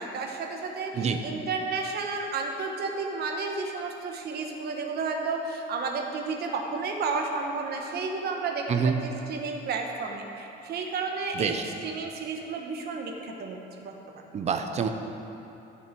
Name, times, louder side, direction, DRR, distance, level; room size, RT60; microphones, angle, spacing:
voice 1, 0.0-13.9, right 4 dB, 55° right, 2 dB, 1.1 m, -32 dB
voice 2, 14.3-14.9, right 6 dB, 35° right, 6 dB, 0.6 m, -26 dB
13.5 x 6.4 x 4.6 m, 3.0 s
cardioid pair, 155°, 20 cm